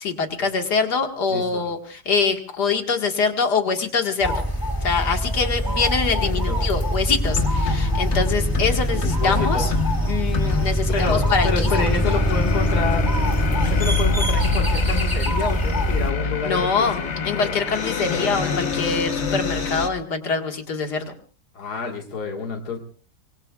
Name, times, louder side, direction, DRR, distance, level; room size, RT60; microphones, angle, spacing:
voice 1, 0.0-4.4 4.8-9.7 10.1-11.7 16.4-17.0 17.2-21.1, left 5 dB, 90° left, 4 dB, 2.4 m, -24 dB
voice 2, 1.3-1.6 6.2-6.8 9.2-9.7 10.9-13.1 13.7-17.6 18.1-18.3 21.6-22.8, left 4 dB, 75° left, 1 dB, 2.4 m, -28 dB
sound 1, 4.2-16.1, equal, 15° left, 1.9 m, -23 dB
sound 2, 7.2-19.9, left 5 dB, 45° left, 1.4 m, -27 dB
25.0 x 22.0 x 2.4 m, 0.42 s
omnidirectional pair, 1.7 m